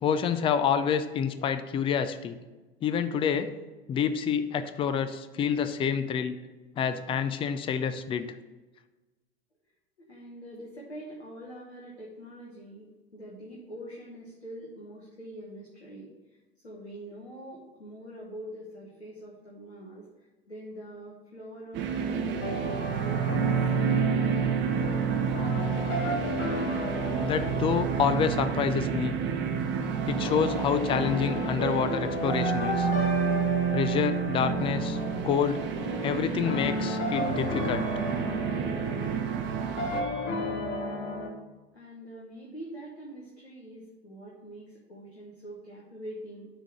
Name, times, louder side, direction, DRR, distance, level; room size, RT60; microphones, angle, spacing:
voice 1, 0.0-2.4 2.8-3.5 3.9-6.4 6.8-8.3 27.2-29.1 30.1-32.9 33.7-35.0 35.2-35.6 36.0-37.9, left 7 dB, 15° left, 11 dB, 0.4 m, -28 dB
voice 2, 10.0-16.4 16.6-23.5 41.7-46.5, right 1 dB, 90° left, -4 dB, 1.2 m, -44 dB
sound 1, 21.7-40.0, right 7 dB, 35° right, 0.8 m, -30 dB
sound 2, 22.4-41.3, left 1 dB, 40° left, 1.2 m, -33 dB
6.6 x 3.7 x 6.2 m, 1.2 s
figure-of-eight pair, 80°, 32 cm